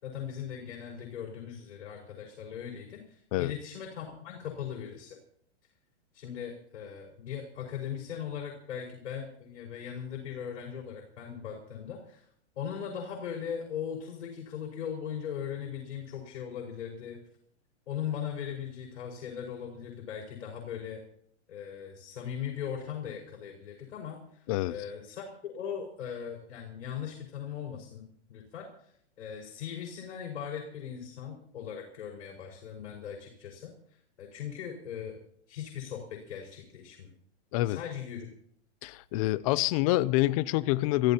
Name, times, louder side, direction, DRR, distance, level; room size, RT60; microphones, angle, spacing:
voice 1, 0.0-5.2 6.1-12.3 12.6-17.2 17.9-21.0 21.5-33.7 34.2-35.2 35.5-37.1 37.6-38.3, left 8 dB, 70° left, 5.3 m, -39 dB
voice 2, 38.8-41.1, left 17 dB, 30° left, 0.5 m, -26 dB
27.5 x 14.5 x 2.9 m
hypercardioid pair, 145°, 35 cm